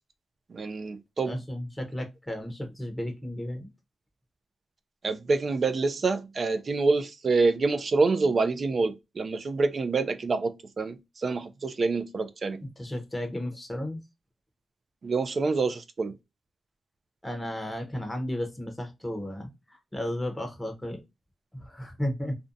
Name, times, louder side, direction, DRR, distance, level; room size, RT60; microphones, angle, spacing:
voice 1, 0.5-1.4 5.0-12.6 15.0-16.1, right 3 dB, 45° right, 0.3 m, -27 dB
voice 2, 1.2-3.7 12.8-14.0 17.2-21.0 21.5-22.4, left 1 dB, 10° left, 0.7 m, -34 dB
2.5 x 2.1 x 2.5 m
wide cardioid pair, 110°, 0 cm